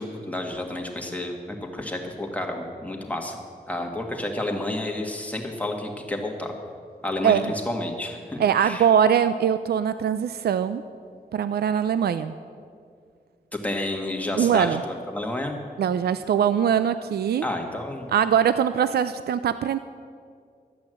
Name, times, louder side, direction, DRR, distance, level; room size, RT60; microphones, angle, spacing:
voice 1, 0.0-3.4 3.7-6.5 7.0-8.9 13.5-15.6 17.4-18.1, left 1 dB, 10° left, 2 dB, 1.6 m, -30 dB
voice 2, 8.4-10.8 11.3-12.3 14.3-14.8 15.8-17.4 18.1-19.8, right 8 dB, 80° right, 12 dB, 0.4 m, -22 dB
12.5 x 8.4 x 7.7 m, 2.2 s
wide cardioid pair, 120°, 16 cm